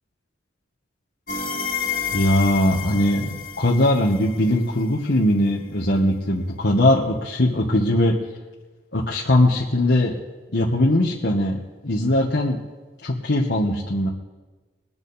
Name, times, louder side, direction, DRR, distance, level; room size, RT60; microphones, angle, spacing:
sound 1, 1.3-5.0, left 6 dB, 50° left, 2.1 m, -30 dB
voice 1, 2.1-8.1 8.9-10.2 10.5-12.6 13.0-14.1, left 1 dB, 70° left, -4 dB, 1.5 m, -20 dB
22.0 x 9.1 x 4.2 m, 1.2 s
head